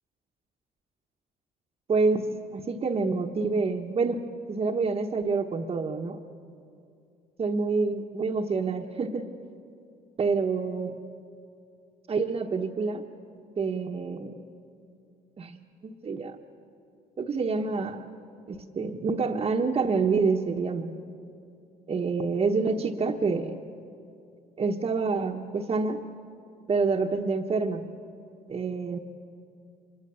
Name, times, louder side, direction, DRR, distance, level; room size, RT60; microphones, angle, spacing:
voice 1, 1.9-2.3 2.5-4.2 4.5-6.2 7.4-9.3 10.2-11.0 12.1-13.0 13.6-14.4 15.4-16.4 17.2-18.0 18.5-20.9 21.9-23.6 24.6-26.0 26.7-27.9 28.5-29.0, right 4 dB, 35° right, 0 dB, 1.1 m, -27 dB
24.5 x 20.5 x 7.0 m, 2.5 s
cardioid pair, 110°, 17 cm